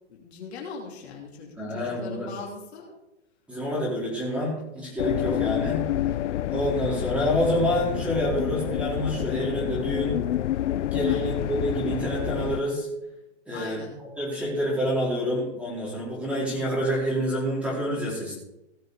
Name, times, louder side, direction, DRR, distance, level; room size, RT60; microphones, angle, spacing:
voice 1, 0.1-2.9 11.1-11.3 13.5-14.0, left 4 dB, 60° left, 0 dB, 3.0 m, -40 dB
voice 2, 1.6-2.3 3.5-5.9 6.5-10.2 10.9-12.9 13.5-13.8 14.2-18.3, equal, 5° right, -5 dB, 4.4 m, -27 dB
sound 1, 5.0-12.6, left 12 dB, 75° left, 0.6 m, -28 dB
17.0 x 6.5 x 5.0 m, 0.91 s
hypercardioid pair, 150°, 37 cm